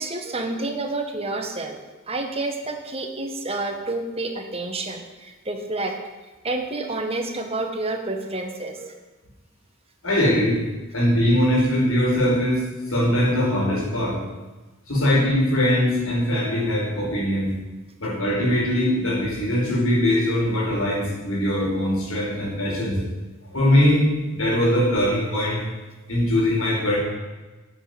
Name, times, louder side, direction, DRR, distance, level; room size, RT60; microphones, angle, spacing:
voice 1, 0.0-1.8 2.1-6.0 6.4-8.9, right 2 dB, 30° right, 4 dB, 1.6 m, -29 dB
voice 2, 10.0-10.6 10.9-12.6 12.9-14.2 14.9-17.5 18.0-23.0 23.5-24.1 24.3-25.6 26.1-27.0, left 1 dB, 85° left, -3 dB, 5.1 m, -21 dB
9.9 x 8.5 x 9.6 m, 1.2 s
head